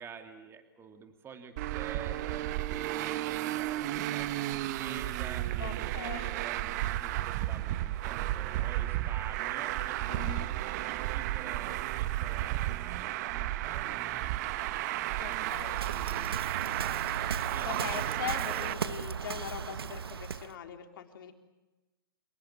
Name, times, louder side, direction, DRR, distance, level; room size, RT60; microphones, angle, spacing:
voice 1, 0.0-19.1, right 6 dB, 20° right, 6 dB, 2.7 m, -49 dB
Traffic noise roadway noise, 1.6-18.7, right 15 dB, 45° right, 1.1 m, -33 dB
voice 2, 5.6-6.4 10.1-10.5 15.2-15.8 17.7-21.3, left 9 dB, 65° left, 5 dB, 3.8 m, -41 dB
Waves surf, 15.3-20.6, right 7 dB, 85° right, 1.1 m, -37 dB
27.5 x 19.0 x 8.9 m, 1.1 s
hypercardioid pair, 130°, 12 cm